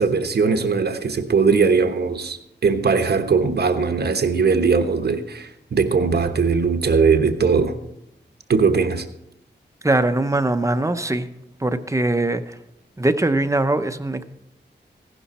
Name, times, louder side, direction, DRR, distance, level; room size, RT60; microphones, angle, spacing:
voice 1, 0.0-7.8 8.5-9.0, right 5 dB, 60° right, 6 dB, 1.1 m, -20 dB
voice 2, 9.8-11.3 11.6-12.6 13.0-14.2, right 2 dB, 15° right, 9 dB, 0.7 m, -21 dB
15.5 x 11.5 x 4.2 m, 0.78 s
wide cardioid pair, 100°, 19 cm